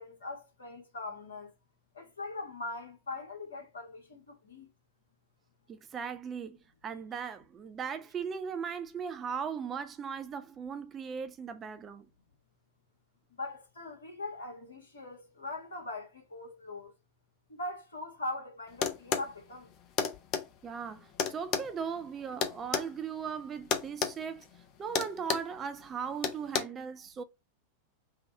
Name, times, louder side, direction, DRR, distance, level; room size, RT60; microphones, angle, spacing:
voice 1, 0.0-1.5 1.9-4.7 13.4-16.9 17.5-19.7, left 2 dB, 70° left, 1.5 m, -41 dB
voice 2, 5.7-6.6 6.8-12.1 20.6-24.5 24.8-27.2, right 6 dB, 25° right, 0.4 m, -38 dB
sound 1, 18.8-19.3 20.0-20.5 21.2-22.9 23.7-24.2 24.4-24.6 24.9-25.5 26.2-26.6, left 7 dB, 35° left, 0.6 m, -30 dB
3.7 x 2.3 x 4.2 m
figure-of-eight pair, 90°, 0 cm